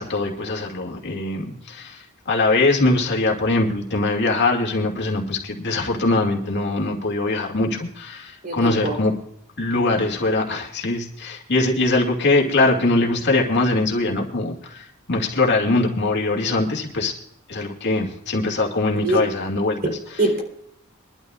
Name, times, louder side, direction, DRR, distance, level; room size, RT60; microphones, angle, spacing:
voice 1, 0.0-9.1 9.6-17.1 17.5-20.2, left 2 dB, 55° left, 0 dB, 2.3 m, -22 dB
voice 2, 8.4-9.0 19.0-19.2 19.8-19.9 20.2-20.4, right 2 dB, 45° right, 1 dB, 3.6 m, -22 dB
23.0 x 12.0 x 2.5 m, 0.73 s
head